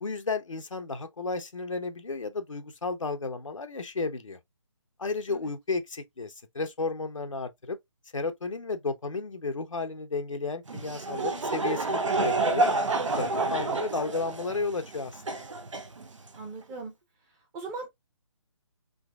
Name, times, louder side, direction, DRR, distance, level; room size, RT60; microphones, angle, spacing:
voice 1, 0.0-4.4 5.0-7.8 8.1-12.7 13.1-15.2, left 3 dB, 90° left, 0.9 m, -33 dB
Laughter / Crowd, 10.7-16.4, right 3 dB, 80° right, 0.9 m, -29 dB
voice 2, 16.3-16.9 17.5-17.9, right 3 dB, 15° right, 0.8 m, -39 dB
3.9 x 2.9 x 2.3 m
figure-of-eight pair, 155°, 16 cm